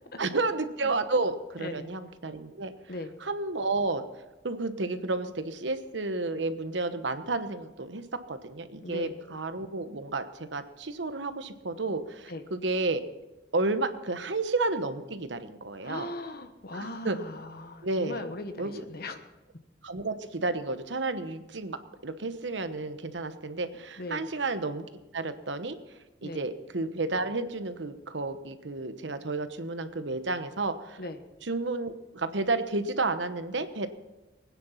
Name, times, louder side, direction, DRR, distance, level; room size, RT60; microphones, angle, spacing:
voice 1, 0.2-2.7 3.2-4.0 4.4-13.0 13.5-16.1 16.7-17.2 17.8-18.2 18.6-18.8 19.8-24.8 25.1-25.8 26.2-31.0 31.4-33.9, right 3 dB, 80° right, 10 dB, 1.1 m, -31 dB
voice 2, 1.6-1.9 2.9-3.2 8.8-9.2 12.3-12.5 15.8-19.2 24.0-24.3 26.2-26.5 31.0-31.2, left 2 dB, 60° left, 8 dB, 1.2 m, -39 dB
20.5 x 9.7 x 5.7 m, 1.1 s
head